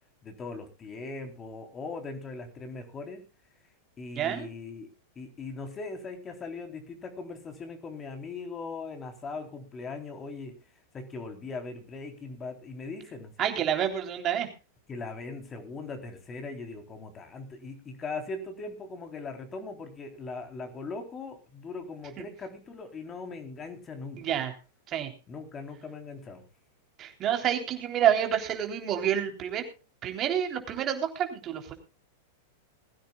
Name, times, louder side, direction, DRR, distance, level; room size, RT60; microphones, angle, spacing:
voice 1, 0.2-3.3 4.0-4.9 5.2-10.6 10.9-13.4 14.9-24.4 25.3-26.5, left 3 dB, 25° left, 4 dB, 3.7 m, -40 dB
voice 2, 4.2-4.5 13.4-14.5 22.2-22.3 24.2-24.5 24.9-25.1 27.0-29.6 30.0-31.7, right 10 dB, 35° right, 5 dB, 3.7 m, -28 dB
21.0 x 16.0 x 2.4 m, 0.32 s
figure-of-eight pair, 95°, 0 cm